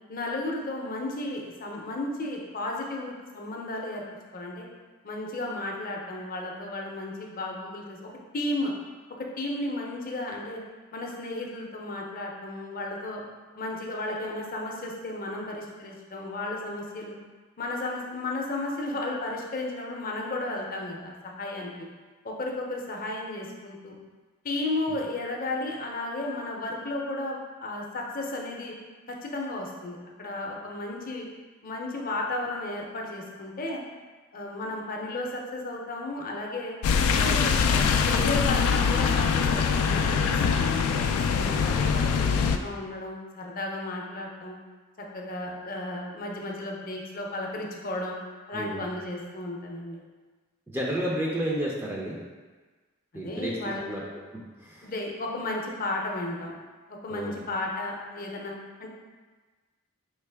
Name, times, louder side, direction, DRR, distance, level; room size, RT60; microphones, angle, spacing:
voice 1, 0.1-4.0 4.3-4.7 5.0-8.7 9.2-10.6 10.9-13.2 13.6-17.2 17.6-21.7 22.2-24.0 24.4-28.7 29.1-31.2 31.6-33.8 34.3-36.8 37.1-41.0 41.4-44.6 45.0-48.2 48.5-50.0 53.1-53.8 54.8-56.5 56.9-58.5 58.8-58.9, left 2 dB, 40° left, 0 dB, 0.6 m, -34 dB
sound 1, 36.8-42.6, left 6 dB, 90° left, 0.3 m, -23 dB
voice 2, 48.5-48.8 50.7-52.2 53.1-54.0 54.3-54.9 57.1-57.4, right 1 dB, 10° right, -4 dB, 0.4 m, -32 dB
4.6 x 2.9 x 3.3 m, 1.4 s
head